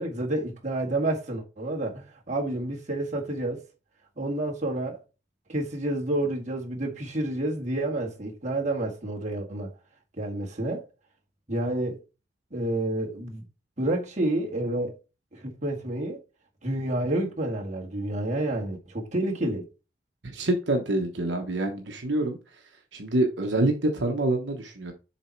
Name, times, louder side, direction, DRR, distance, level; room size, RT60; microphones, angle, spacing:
voice 1, 0.0-3.6 4.2-5.0 5.5-9.7 10.2-10.8 11.5-12.0 12.5-13.4 13.8-15.0 15.3-16.2 16.6-19.6, right 1 dB, 40° right, 1.8 m, -29 dB
voice 2, 20.2-22.4 22.9-24.9, right 2 dB, 70° right, 1.1 m, -26 dB
7.2 x 4.2 x 4.5 m
head